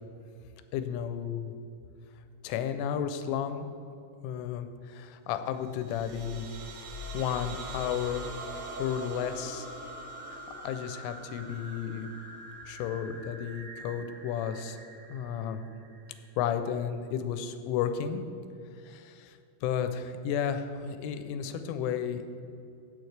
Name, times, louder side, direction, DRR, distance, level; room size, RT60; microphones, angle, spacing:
voice 1, 0.7-1.5 2.4-3.7 4.2-6.5 7.1-8.3 8.8-9.7 10.3-12.1 12.7-14.8 15.1-15.6 16.4-18.3 18.8-22.4, left 8 dB, 85° left, 9 dB, 3.1 m, -33 dB
sound 1, 5.7-16.3, right 1 dB, 85° right, 4.9 m, -43 dB
15.5 x 6.9 x 3.3 m, 2.6 s
omnidirectional pair, 5.5 m